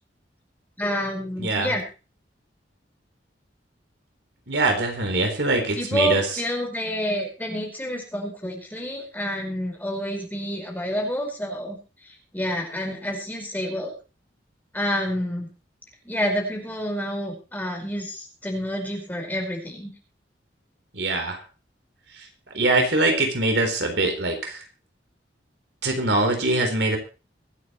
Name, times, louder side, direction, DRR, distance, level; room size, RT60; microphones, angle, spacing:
voice 1, 0.8-1.8 5.8-11.8 12.3-13.9 14.7-15.5 16.0-19.9, equal, 10° left, 1 dB, 5.0 m, -28 dB
voice 2, 1.4-1.7 4.5-6.3 20.9-21.4 22.5-24.6 25.8-27.0, right 2 dB, 70° right, 4 dB, 3.9 m, -23 dB
24.5 x 9.4 x 3.1 m, 0.33 s
head